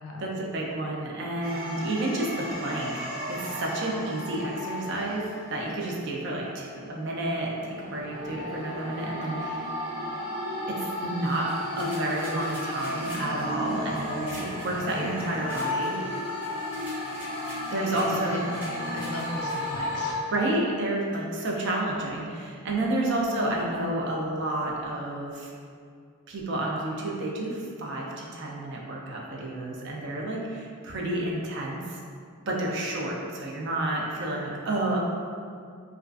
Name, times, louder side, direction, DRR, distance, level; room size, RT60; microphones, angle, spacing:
voice 1, 0.2-9.7 10.7-16.2 17.7-18.5 20.3-25.5 26.3-32.0 32.5-35.0, right 1 dB, 50° right, -2 dB, 0.4 m, -30 dB
sound 1, 1.4-5.8 6.4-20.1, left 1 dB, 80° right, 1.2 m, -34 dB
sound 2, 11.2-19.7, equal, 10° right, 1.1 m, -46 dB
voice 2, 17.7-18.4 18.7-20.3 21.6-21.8, left 1 dB, 85° left, 0 dB, 0.4 m, -37 dB
2.3 x 2.3 x 2.3 m, 2.2 s
head